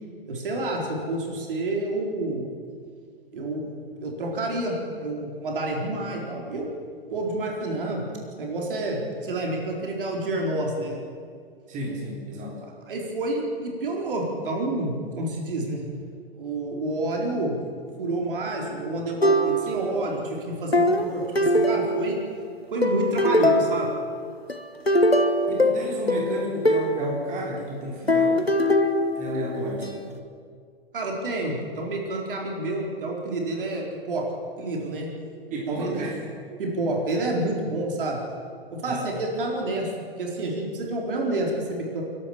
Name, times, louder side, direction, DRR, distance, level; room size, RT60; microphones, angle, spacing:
voice 1, 0.3-2.4 3.3-6.7 7.1-8.0 8.4-11.0 12.9-15.8 16.4-17.5 18.0-22.2 22.7-23.9 30.9-34.3 34.6-35.1 35.7-36.1 36.6-38.2 38.7-39.9 40.2-42.0, right 2 dB, 60° right, -1 dB, 4.5 m, -29 dB
voice 2, 11.7-12.7 25.5-28.6 29.1-30.1 35.5-36.2 38.9-39.1, right 1 dB, 25° right, -2 dB, 3.8 m, -32 dB
sound 1, 19.2-20.0 20.7-22.4 22.8-24.0 24.5-27.0 28.1-29.9, left 1 dB, 90° left, 1.6 m, -22 dB
30.0 x 12.0 x 7.6 m, 2.2 s
figure-of-eight pair, 105°, 30 cm